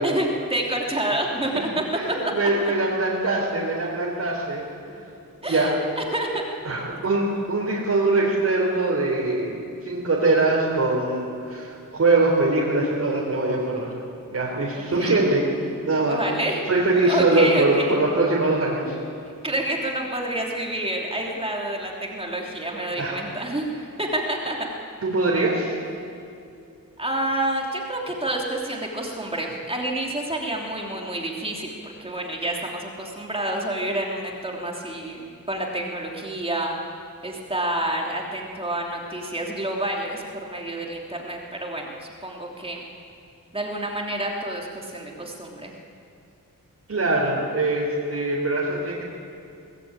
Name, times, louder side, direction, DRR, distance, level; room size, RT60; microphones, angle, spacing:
voice 1, 0.0-1.8 2.6-2.7 5.4-7.0 14.7-15.1 16.1-16.7 17.1-18.0 19.4-23.7 24.0-24.6 27.0-36.8 37.2-42.8 43.5-45.7, right 1 dB, 15° right, -1 dB, 3.0 m, -28 dB
voice 2, 1.9-5.0 5.4-5.7 6.7-9.5 9.8-14.0 14.3-15.4 15.8-16.2 16.7-19.0 23.0-23.2 25.0-25.7 46.9-49.0, right 2 dB, 50° right, -4 dB, 3.8 m, -22 dB
24.0 x 19.0 x 8.9 m, 2.6 s
wide cardioid pair, 165°, 34 cm